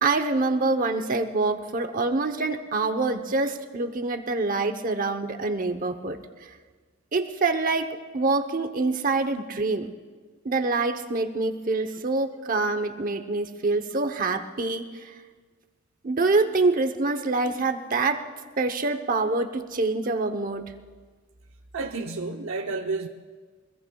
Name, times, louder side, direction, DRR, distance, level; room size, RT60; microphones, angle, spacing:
voice 1, 0.0-6.2 7.1-9.9 10.4-15.1 16.0-18.2 18.6-20.7, right 3 dB, 45° right, 7 dB, 0.9 m, -25 dB
voice 2, 21.7-23.1, right 3 dB, 90° right, 2 dB, 0.8 m, -30 dB
24.5 x 21.0 x 2.3 m, 1.4 s
head